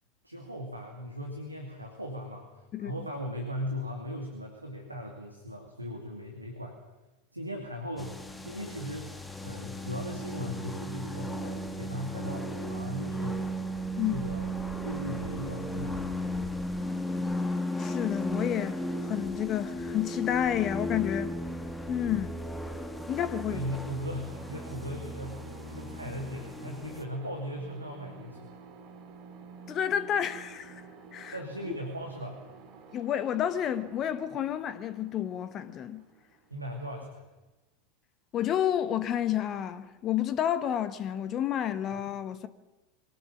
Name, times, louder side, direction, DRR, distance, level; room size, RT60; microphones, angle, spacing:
voice 1, 0.2-6.7 7.3-8.2 8.4-9.1 9.4-13.4 14.1-14.5 14.8-16.0 23.5-28.6 31.3-32.4 36.5-37.2, equal, 85° right, 2.8 m, -38 dB
sound 1, 8.0-27.0, equal, 5° left, 2.0 m, -35 dB
voice 2, 17.8-21.3 21.9-22.3 23.1-23.7 29.7-30.8 31.1-31.4 32.9-36.0 38.3-42.5, left 10 dB, 35° left, 1.2 m, -30 dB
sound 2, 23.5-37.2, right 5 dB, 45° right, 3.8 m, -51 dB
23.0 x 18.5 x 7.4 m
figure-of-eight pair, 85°, 0 cm